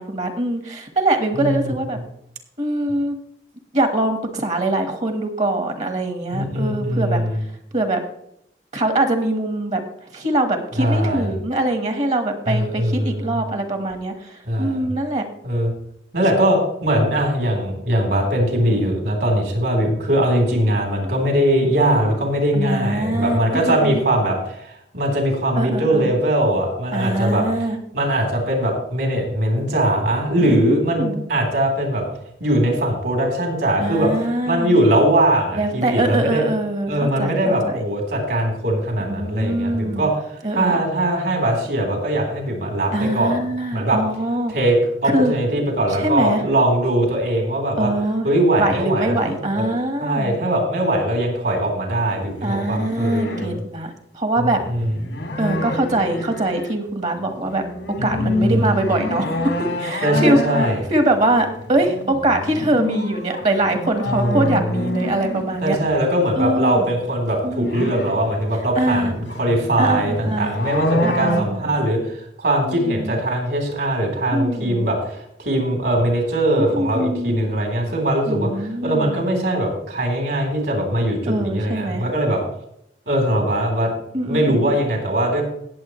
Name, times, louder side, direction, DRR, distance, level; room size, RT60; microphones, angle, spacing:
voice 1, 0.0-2.0 2.6-3.2 3.7-7.2 7.7-8.0 8.7-9.8 10.1-15.3 21.0-21.1 22.5-24.0 25.6-26.1 26.9-27.8 30.4-31.2 33.8-34.8 35.5-37.7 39.0-40.1 40.4-40.9 42.9-44.5 45.0-45.3 46.0-46.5 47.8-48.3 48.6-50.4 52.4-54.6 55.4-57.6 58.0-60.4 60.9-65.8 66.4-66.9 67.4-67.9 68.7-69.1 69.8-70.5 71.0-71.8 72.7-73.2 74.3-74.9 76.6-77.5 78.3-79.2 81.3-82.0 84.1-84.7, right 1 dB, 40° right, 6 dB, 1.4 m, -23 dB
voice 2, 1.3-1.7 6.3-7.4 10.8-11.3 12.5-13.4 14.5-14.9 15.4-15.7 16.1-27.4 27.9-32.0 32.4-34.1 34.5-36.4 36.9-40.1 40.5-43.4 43.7-44.0 44.5-47.9 48.2-49.7 50.0-53.6 54.4-54.8 58.0-58.7 60.0-60.8 64.1-64.8 65.6-82.4 83.1-83.9 84.2-85.4, right 1 dB, 65° right, 1 dB, 3.6 m, -21 dB
sound 1, 52.2-53.5 54.6-56.7 57.2-65.9 67.1-71.4, left 1 dB, 85° left, 1.9 m, -27 dB
18.0 x 7.4 x 3.1 m, 0.75 s
head